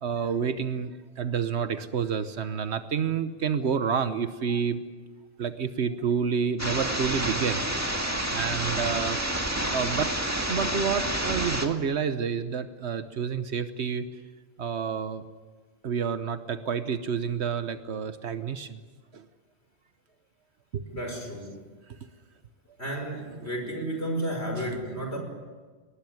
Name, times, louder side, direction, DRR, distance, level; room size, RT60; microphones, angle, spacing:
voice 1, 0.0-4.8 5.4-7.6 8.3-9.2 9.7-10.1 10.5-14.1 14.6-15.2 15.8-18.8 19.1-19.3 20.7-20.8 24.6-24.7, right 6 dB, 85° right, 10 dB, 1.3 m, -29 dB
sound 1, 6.6-11.7, right 1 dB, 15° right, 2.0 m, -29 dB
voice 2, 20.9-21.5 22.8-25.2, right 1 dB, 75° left, 3 dB, 5.6 m, -32 dB
22.0 x 19.5 x 9.5 m, 1.4 s
omnidirectional pair, 1.1 m